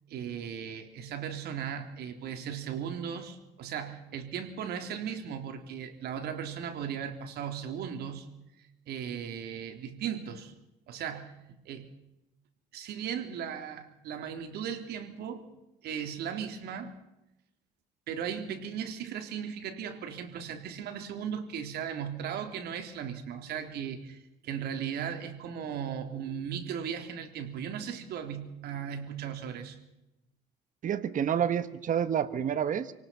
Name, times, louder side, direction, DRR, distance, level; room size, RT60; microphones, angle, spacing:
voice 1, 0.1-8.3 8.9-10.5 10.9-11.3 11.7-11.9 12.7-15.5 15.8-16.9 18.1-29.8, right 8 dB, 70° right, 6 dB, 3.6 m, -37 dB
voice 2, 30.8-32.9, right 8 dB, 50° right, 13 dB, 1.5 m, -29 dB
28.0 x 18.5 x 5.9 m, 0.92 s
cardioid pair, 110°, 17 cm